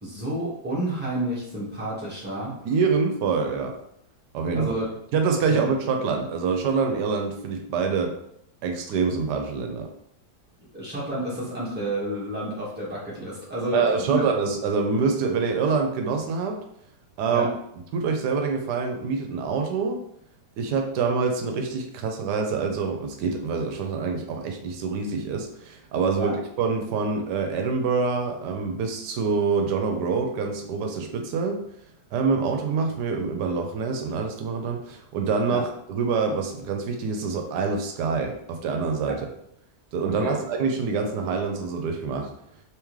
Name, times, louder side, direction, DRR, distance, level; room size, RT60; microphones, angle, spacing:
voice 1, 0.0-2.5 4.5-4.9 5.5-5.6 10.7-14.2 17.3-17.5 26.2-26.3 35.5-35.6 40.2-40.3, right 1 dB, 5° right, -7 dB, 1.1 m, -30 dB
voice 2, 2.7-3.7 4.3-4.7 5.1-8.1 8.6-9.9 13.7-16.6 17.2-17.5 17.9-20.0 20.6-31.6 32.1-39.3 39.9-42.3, right 5 dB, 80° right, 4 dB, 1.2 m, -26 dB
3.6 x 3.2 x 3.1 m, 0.74 s
omnidirectional pair, 1.8 m